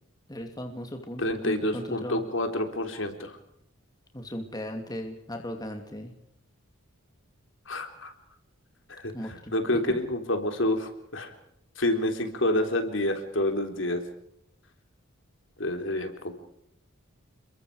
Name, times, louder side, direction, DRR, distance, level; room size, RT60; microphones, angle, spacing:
voice 1, 0.3-2.2 4.1-6.1 9.1-9.8, equal, 20° left, 4 dB, 2.5 m, -37 dB
voice 2, 1.2-3.4 7.7-8.1 8.9-11.3 11.8-14.0 15.6-16.1, left 1 dB, 60° left, 6 dB, 3.8 m, -28 dB
29.5 x 23.0 x 4.9 m, 0.75 s
head